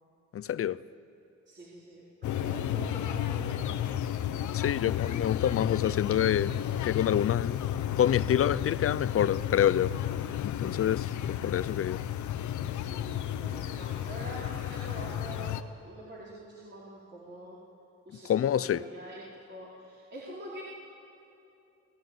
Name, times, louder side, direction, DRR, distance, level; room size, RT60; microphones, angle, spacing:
voice 1, 0.3-0.8 4.5-6.5 6.8-7.6 8.0-10.0 10.4-12.0 18.2-18.9, left 10 dB, 50° left, 0.7 m, -27 dB
voice 2, 1.5-4.0 11.3-11.8 12.9-17.6 18.0-19.2 19.5-20.6, right 1 dB, 35° right, 4.6 m, -45 dB
sound 1, 2.2-15.6, left 11 dB, 75° left, 1.1 m, -32 dB
28.5 x 18.0 x 9.4 m
cardioid pair, 90°, 30 cm